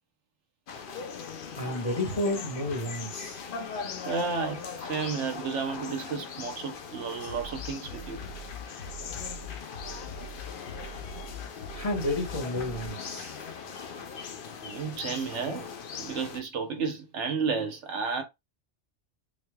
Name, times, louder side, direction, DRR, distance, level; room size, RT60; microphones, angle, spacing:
sound 1, 0.7-16.4, left 6 dB, 55° left, 0.7 m, -40 dB
voice 1, 1.6-3.4 11.7-13.4, left 1 dB, 30° left, 1.2 m, -31 dB
voice 2, 4.1-8.2 14.6-15.7 16.0-18.2, right 5 dB, 75° right, 1.1 m, -32 dB
Bass drum, 7.3-12.9, left 2 dB, 90° left, 1.2 m, -42 dB
3.9 x 3.2 x 2.2 m
omnidirectional pair, 1.2 m